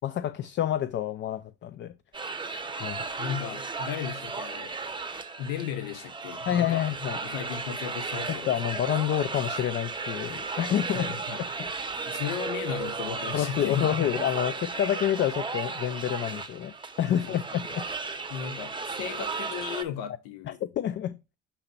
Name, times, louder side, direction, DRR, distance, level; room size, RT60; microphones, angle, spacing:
voice 1, 0.0-1.9 2.8-3.1 6.5-7.2 8.3-11.1 11.6-12.0 13.3-17.9 20.5-21.2, left 11 dB, 35° left, 0.4 m, -28 dB
sound 1, 2.1-19.8, right 4 dB, 15° right, 0.8 m, -35 dB
voice 2, 3.2-4.7 5.4-6.9 7.2-8.6 10.9-11.4 12.1-14.1 17.1-17.4 18.3-20.6, left 9 dB, 70° left, 0.7 m, -35 dB
7.0 x 2.9 x 5.2 m
hypercardioid pair, 65°, 32 cm